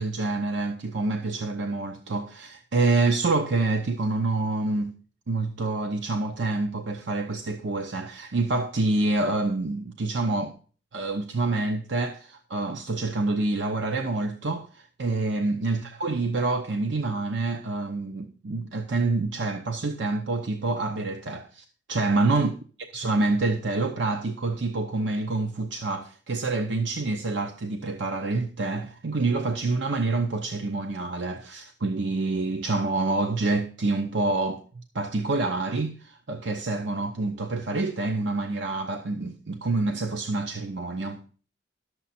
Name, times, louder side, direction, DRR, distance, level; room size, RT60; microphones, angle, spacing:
voice 1, 0.0-5.0 5.3-10.5 10.9-22.5 22.9-34.6 34.9-41.2, right 3 dB, 70° right, 0.8 m, -27 dB
11.5 x 7.1 x 4.2 m
head